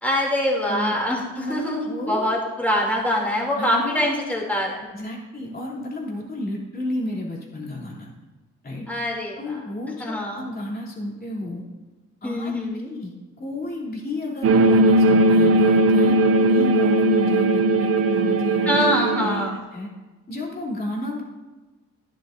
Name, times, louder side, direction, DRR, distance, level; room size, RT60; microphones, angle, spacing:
voice 1, 0.0-4.8 8.9-9.6 10.0-10.5 12.2-12.9 18.6-19.6, left 1 dB, 5° left, -2 dB, 2.9 m, -24 dB
voice 2, 1.4-2.4 3.5-4.2 4.9-8.1 8.6-8.9 9.4-11.6 12.2-12.5 12.9-13.1 13.4-18.9 19.1-19.9 20.3-21.2, left 1 dB, 30° left, -3 dB, 3.2 m, -32 dB
sound 1, 14.4-19.5, right 2 dB, 50° right, 0.7 m, -18 dB
12.5 x 10.0 x 2.7 m, 1.2 s
cardioid pair, 90°, 30 cm